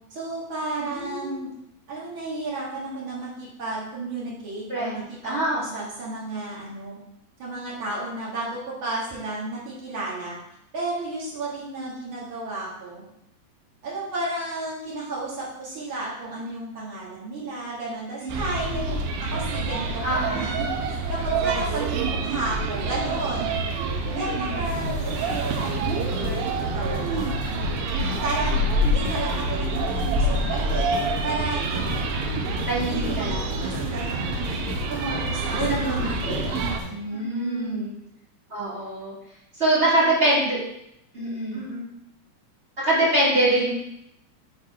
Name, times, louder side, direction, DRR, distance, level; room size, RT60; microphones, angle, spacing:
voice 1, 0.1-1.5 1.9-7.0 7.4-10.4 10.7-13.0 13.8-19.0 19.3-23.6 24.1-27.4 28.2-30.9 31.2-32.0 32.8-33.3 33.6-34.6 34.9-35.5 35.8-36.4 37.1-37.8 41.5-41.9, right 2 dB, 50° right, -5 dB, 1.7 m, -33 dB
voice 2, 0.8-1.4 4.7-5.8 18.2-18.3 18.6-18.9 20.0-20.4 24.1-24.5 32.7-33.6 35.6-36.4 36.9-37.9 38.5-39.1 39.6-40.6 41.1-41.6 42.8-43.7, right 1 dB, 30° right, -8 dB, 1.3 m, -25 dB
sound 1, 18.3-36.8, right 2 dB, 85° right, 2.4 m, -27 dB
sound 2, 24.6-36.9, left 4 dB, 85° left, 1.5 m, -36 dB
6.4 x 3.7 x 4.7 m, 0.79 s
omnidirectional pair, 4.2 m